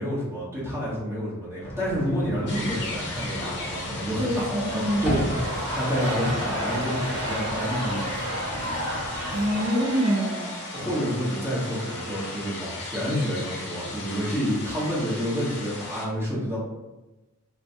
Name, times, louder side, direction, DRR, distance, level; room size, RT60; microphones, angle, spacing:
voice 1, 0.0-8.0 10.7-16.6, equal, 10° right, -8 dB, 1.1 m, -29 dB
sound 1, 1.6-9.6, equal, 30° left, 1.0 m, -35 dB
sound 2, 2.5-16.1, left 2 dB, 55° left, 0.7 m, -37 dB
voice 2, 4.2-5.2 9.3-10.6 14.8-14.9, equal, 40° right, -4 dB, 0.4 m, -26 dB
sound 3, 4.4-12.9, equal, 70° right, 0.9 m, -33 dB
4.3 x 2.2 x 2.6 m, 1.1 s
head